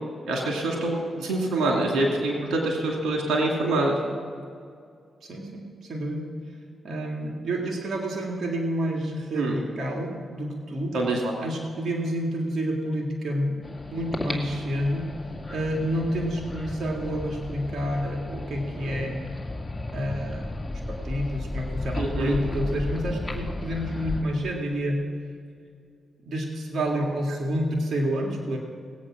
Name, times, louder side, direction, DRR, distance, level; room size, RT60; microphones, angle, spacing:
voice 1, 0.3-4.0 9.3-9.6 10.9-11.3 21.9-22.4, right 2 dB, 85° right, -1 dB, 2.5 m, -25 dB
voice 2, 5.2-6.2 6.8-10.9 11.4-13.6 13.9-15.1 15.5-19.3 19.9-20.5 20.9-25.0 26.2-28.6, equal, 60° right, 0 dB, 2.3 m, -29 dB
sound 1, 13.6-24.2, left 2 dB, 15° left, 2.4 m, -34 dB
19.0 x 8.5 x 6.1 m, 2.3 s
supercardioid pair, 55°, 0 cm